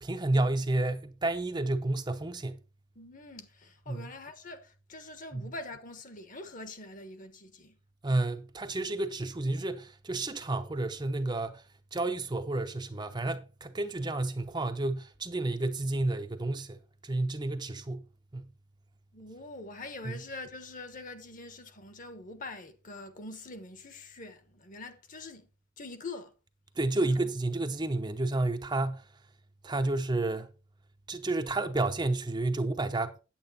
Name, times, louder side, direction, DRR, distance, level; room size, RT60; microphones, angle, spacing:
voice 1, 0.0-2.6 3.9-4.1 5.3-5.5 8.0-11.6 11.9-18.0 18.3-18.5 20.0-20.2 26.8-29.1 29.6-30.5 31.1-33.1, right 2 dB, 25° right, 0.7 m, -31 dB
voice 2, 2.9-7.8 19.1-25.5 25.8-26.3 27.0-27.2, left 2 dB, 45° left, 1.3 m, -44 dB
8.8 x 8.7 x 4.1 m
head